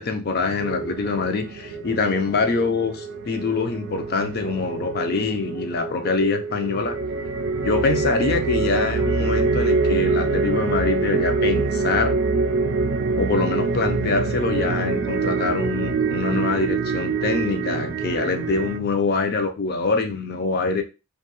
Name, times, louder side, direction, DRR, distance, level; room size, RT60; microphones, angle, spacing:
voice 1, 0.0-7.0 7.6-12.2 13.2-20.8, left 4 dB, 50° left, 0.5 m, -24 dB
sound 1, 0.6-18.8, right 4 dB, 65° right, 0.4 m, -25 dB
2.5 x 2.3 x 2.9 m
head